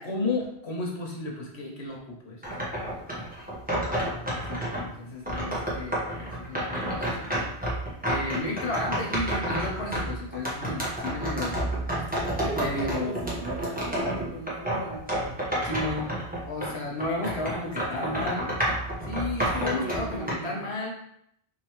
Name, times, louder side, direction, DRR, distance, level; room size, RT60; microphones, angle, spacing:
voice 1, 0.0-2.7 3.9-7.3 8.0-11.6 12.6-13.1 15.6-16.1 16.5-18.5 19.0-20.9, left 2 dB, 85° left, -1 dB, 1.3 m, -33 dB
sound 1, 2.4-4.9 5.3-16.7 17.0-20.3, right 1 dB, 10° right, 1.0 m, -30 dB
voice 2, 12.1-15.4 17.5-18.6 19.4-20.7, right 1 dB, 60° right, -2 dB, 0.8 m, -38 dB
4.5 x 3.3 x 3.0 m, 0.74 s
omnidirectional pair, 1.1 m